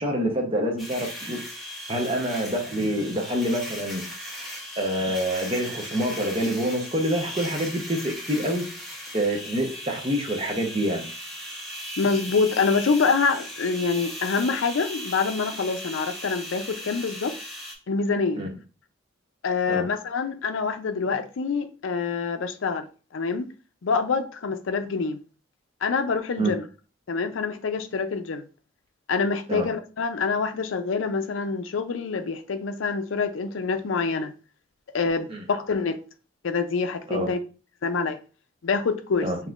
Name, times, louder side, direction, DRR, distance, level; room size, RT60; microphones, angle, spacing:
voice 1, 0.0-1.4 1.9-4.0 4.8-8.7 9.1-11.1 18.4-18.5 19.7-19.9 26.4-26.6 29.5-29.7 35.3-35.4 37.1-37.3 39.2-39.4, equal, 25° right, 0.8 m, -26 dB
sound 1, 0.8-17.7, equal, ahead, 0.9 m, -38 dB
voice 2, 12.0-17.3 17.9-18.4 19.4-22.8 23.1-23.5 23.8-25.2 25.8-26.6 27.1-28.4 29.1-34.3 34.9-36.0 36.4-37.4 37.8-38.2 38.6-39.3, left 4 dB, 80° left, 0.5 m, -26 dB
5.3 x 2.9 x 2.4 m
head